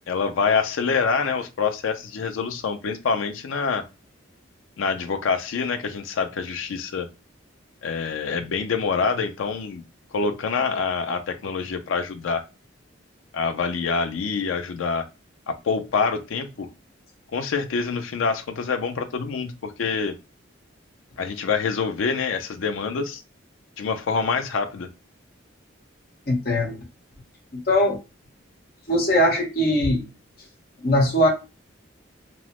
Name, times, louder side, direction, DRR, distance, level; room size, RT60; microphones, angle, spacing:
voice 1, 0.1-3.8 4.8-7.1 7.8-9.8 10.1-12.5 13.3-15.1 15.5-16.7 17.3-20.1 21.2-23.2 23.8-24.9, left 5 dB, 85° left, 7 dB, 0.4 m, -26 dB
voice 2, 26.3-26.8 27.7-28.0 28.9-30.0 30.8-31.3, left 1 dB, 50° left, 1 dB, 0.9 m, -20 dB
3.0 x 2.0 x 2.9 m, 0.28 s
head